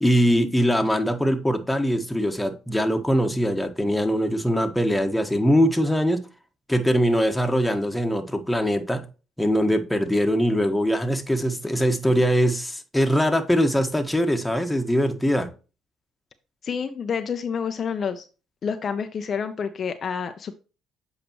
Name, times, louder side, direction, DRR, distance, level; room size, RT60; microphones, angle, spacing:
voice 1, 0.0-6.2 6.7-9.1 9.4-15.5, equal, 5° left, 5 dB, 1.4 m, -22 dB
voice 2, 16.6-18.2 18.6-20.5, left 6 dB, 50° left, 7 dB, 0.7 m, -28 dB
8.0 x 4.9 x 3.0 m, 0.33 s
supercardioid pair, 70°, 0 cm